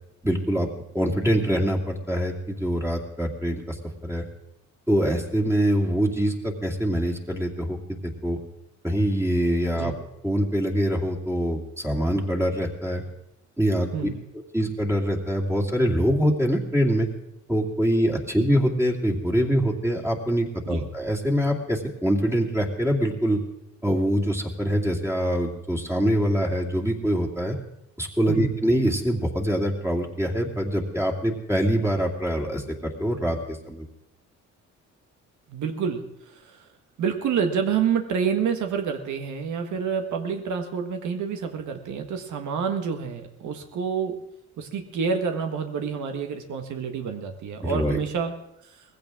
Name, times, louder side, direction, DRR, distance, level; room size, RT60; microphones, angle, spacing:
voice 1, 0.2-0.7 0.9-4.2 4.9-8.4 8.8-9.9 10.2-13.0 13.6-14.1 14.5-17.1 17.5-23.4 23.8-27.6 28.0-33.9 47.6-48.0, equal, 10° right, 0 dB, 2.5 m, -24 dB
voice 2, 35.5-36.7 37.0-44.2 44.6-48.3 48.6-48.8, right 6 dB, 75° right, 6 dB, 1.8 m, -28 dB
19.0 x 15.5 x 3.8 m, 0.82 s
cardioid pair, 90°, 30 cm